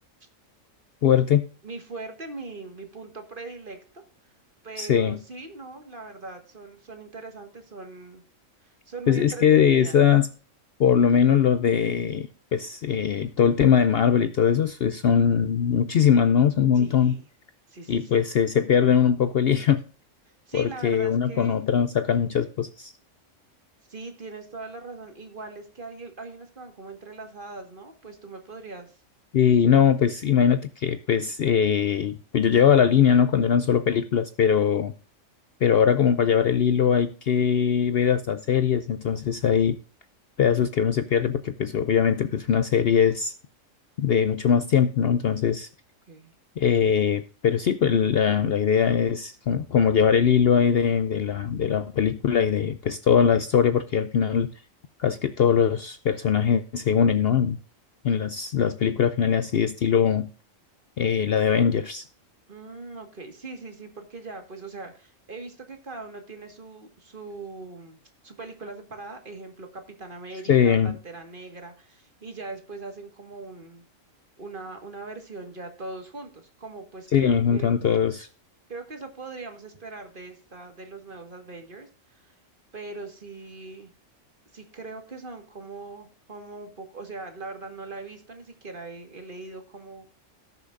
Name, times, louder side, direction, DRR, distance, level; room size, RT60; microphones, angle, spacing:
voice 1, 1.0-1.4 4.8-5.2 9.1-10.3 10.8-17.2 17.9-19.8 20.5-22.9 29.3-34.9 35.6-39.8 40.4-43.3 44.0-45.7 46.6-54.5 55.0-57.6 58.0-60.3 61.0-62.0 70.5-71.0 77.1-78.3, left 8 dB, 60° left, 11 dB, 0.7 m, -21 dB
voice 2, 1.6-4.0 4.6-8.2 8.6-10.1 16.8-17.3 17.7-18.2 20.5-21.6 23.9-29.0 46.1-46.3 62.5-68.0 68.2-73.8 74.4-78.0 78.7-82.3 82.7-83.9 84.5-90.2, right 3 dB, 40° right, 5 dB, 1.8 m, -41 dB
18.0 x 6.9 x 2.5 m, 0.40 s
omnidirectional pair, 1.4 m